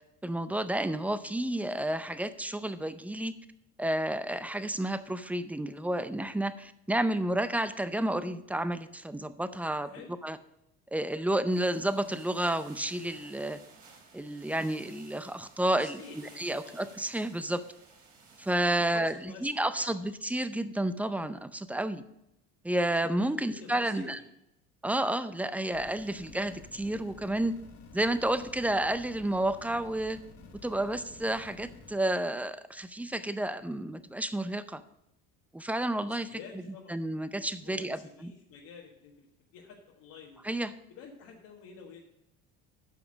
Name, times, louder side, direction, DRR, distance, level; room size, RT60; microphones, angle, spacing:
voice 1, 0.2-3.3 3.8-9.9 10.2-10.4 10.9-13.6 14.1-17.6 18.4-22.0 22.6-24.2 24.8-27.5 27.9-30.2 30.6-34.8 35.5-36.4 36.9-38.3 40.4-40.7, right 1 dB, 5° right, 12 dB, 0.5 m, -31 dB
voice 2, 9.8-10.1 15.7-17.3 18.2-18.3 18.8-20.0 23.4-24.2 36.1-36.9 37.6-39.3 39.5-40.4 40.9-42.0, left 5 dB, 65° left, -2 dB, 1.6 m, -50 dB
sound 1, 11.5-18.6, right 4 dB, 50° right, 3.3 m, -56 dB
sound 2, 25.7-32.0, left 3 dB, 50° left, 1.8 m, -52 dB
9.1 x 5.8 x 6.2 m, 0.85 s
supercardioid pair, 100°, 36 cm